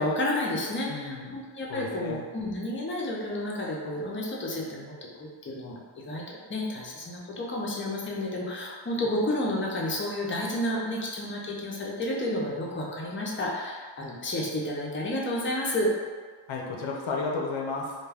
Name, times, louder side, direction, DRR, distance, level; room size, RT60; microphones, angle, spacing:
voice 1, 0.0-4.9 5.2-15.9, left 1 dB, 25° left, -3 dB, 0.5 m, -31 dB
voice 2, 0.9-1.4 1.7-2.2 16.5-17.9, left 3 dB, 85° left, -1 dB, 0.5 m, -33 dB
2.2 x 2.2 x 3.3 m, 1.5 s
wide cardioid pair, 85°, 46 cm